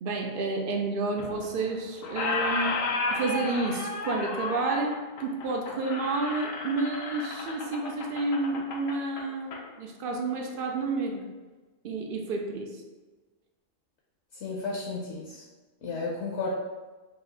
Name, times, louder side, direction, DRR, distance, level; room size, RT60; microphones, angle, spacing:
voice 1, 0.0-2.8 3.1-11.3 11.8-12.8, right 3 dB, 60° right, 2 dB, 0.6 m, -30 dB
Squeak, 1.2-1.7 2.0-9.6, left 3 dB, 90° left, 1.0 m, -33 dB
voice 2, 14.3-15.4 15.8-16.5, left 3 dB, 65° left, -3 dB, 0.9 m, -33 dB
4.1 x 2.4 x 3.7 m, 1.3 s
omnidirectional pair, 1.3 m